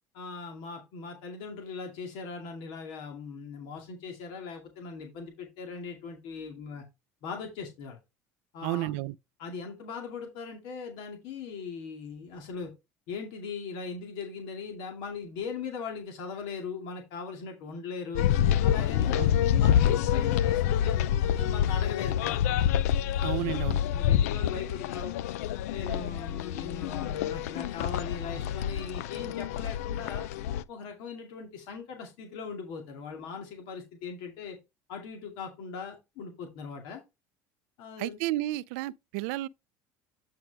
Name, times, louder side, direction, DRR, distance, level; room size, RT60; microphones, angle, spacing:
voice 1, 0.1-6.8 7.2-8.0 8.5-8.9 9.4-12.7 13.1-18.3 18.6-19.2 19.5-22.6 23.4-25.1 25.7-30.3 30.7-34.6 34.9-37.0 37.8-38.2, left 5 dB, 70° left, 2.2 m, -40 dB
voice 2, 8.6-9.1 19.2-19.3 23.2-23.8 38.0-39.5, right 17 dB, 80° right, 0.4 m, -32 dB
sound 1, 18.1-30.6, left 10 dB, 90° left, 0.5 m, -27 dB
9.3 x 4.8 x 3.4 m
supercardioid pair, 90°, 8 cm